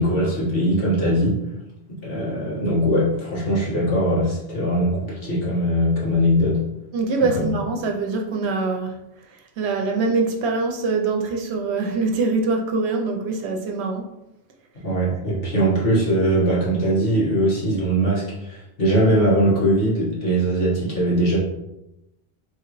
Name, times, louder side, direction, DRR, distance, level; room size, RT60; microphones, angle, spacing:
voice 1, 0.0-1.3 2.0-6.6 14.8-21.4, right 1 dB, 60° left, 1.7 m, -21 dB
voice 2, 6.9-9.0 9.3-14.1, right 3 dB, 80° right, 0.9 m, -24 dB
3.8 x 3.4 x 3.0 m
omnidirectional pair, 1.1 m